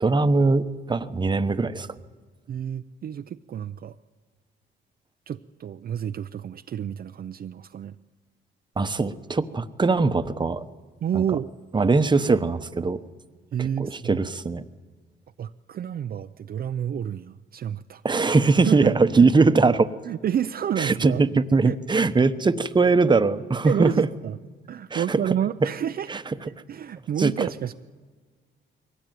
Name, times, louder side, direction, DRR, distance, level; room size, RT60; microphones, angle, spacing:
voice 1, 0.0-1.9 8.8-10.6 11.1-11.2 11.7-13.0 13.8-14.6 18.0-19.9 20.8-24.1 24.9-25.2 26.1-26.2 27.2-27.5, right 3 dB, 20° right, 11 dB, 1.0 m, -21 dB
voice 2, 2.5-3.9 5.3-8.0 11.0-11.5 13.5-14.2 15.4-18.0 18.6-19.3 20.0-21.2 21.6-21.8 23.7-24.4 24.7-26.1 26.4-27.7, right 9 dB, 50° right, 9 dB, 0.6 m, -29 dB
22.5 x 17.0 x 9.4 m, 1.5 s
cardioid pair, 90°, 20 cm